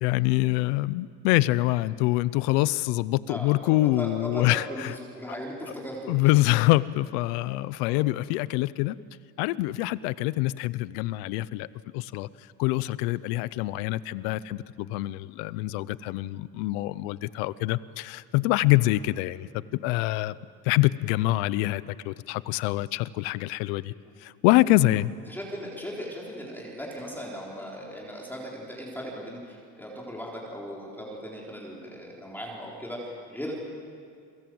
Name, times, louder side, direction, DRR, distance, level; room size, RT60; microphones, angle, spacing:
voice 1, 0.0-4.9 6.1-8.9 9.4-11.7 11.9-12.3 12.6-20.4 20.6-23.9 24.2-25.1, left 18 dB, 80° left, 18 dB, 0.9 m, -25 dB
voice 2, 3.3-6.3 7.4-8.0 24.0-24.2 25.3-33.6, equal, 5° left, -3 dB, 4.2 m, -38 dB
30.0 x 24.0 x 7.9 m, 2.2 s
cardioid pair, 160°, 45 cm